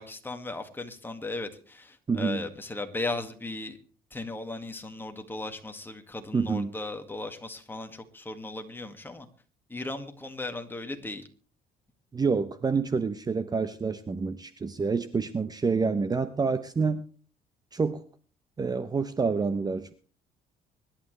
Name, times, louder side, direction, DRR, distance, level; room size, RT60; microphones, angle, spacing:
voice 1, 0.0-3.8 4.1-9.3 9.7-11.2, left 2 dB, 10° left, 6 dB, 2.0 m, -37 dB
voice 2, 2.1-2.5 6.3-6.7 12.1-17.1 17.7-18.0 18.6-19.9, right 4 dB, 25° right, 12 dB, 0.9 m, -28 dB
24.5 x 11.5 x 3.3 m, 0.41 s
cardioid pair, 110°, 17 cm